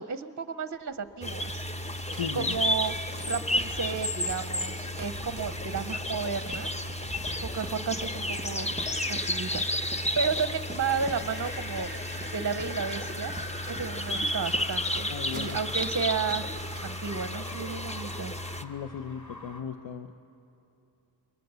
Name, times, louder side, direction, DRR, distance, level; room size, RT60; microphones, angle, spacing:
voice 1, 0.0-1.7 2.3-2.9 3.3-6.7 7.4-8.7 9.1-13.3 13.7-16.5 16.8-18.3, right 6 dB, 40° right, 12 dB, 0.7 m, -33 dB
sound 1, 1.1-19.6, left 1 dB, 50° left, 2.7 m, -46 dB
sound 2, 1.2-18.6, left 1 dB, 15° left, 0.8 m, -32 dB
sound 3, 1.6-17.6, right 2 dB, 20° right, 1.1 m, -47 dB
voice 2, 2.1-2.6 15.1-15.6 18.6-20.2, left 7 dB, 75° left, 8 dB, 0.7 m, -36 dB
22.5 x 20.0 x 6.8 m, 2.7 s
wide cardioid pair, 45°, 46 cm